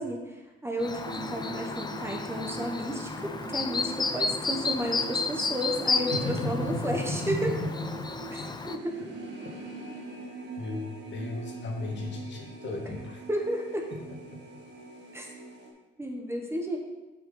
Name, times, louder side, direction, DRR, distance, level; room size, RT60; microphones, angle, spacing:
voice 1, 0.0-7.5 8.3-8.4 8.7-9.0 12.9-13.0 13.3-13.9 15.1-15.3 16.0-16.8, equal, 10° right, 1 dB, 1.3 m, -32 dB
Chirp tweet, 0.8-8.8, left 4 dB, 20° left, 0.5 m, -32 dB
sound 1, 1.0-15.7, right 2 dB, 60° right, 1.5 m, -43 dB
voice 2, 6.1-8.5 10.6-13.2, left 2 dB, 65° left, 0 dB, 1.6 m, -34 dB
7.4 x 6.0 x 3.9 m, 1.1 s
cardioid pair, 90°, 20 cm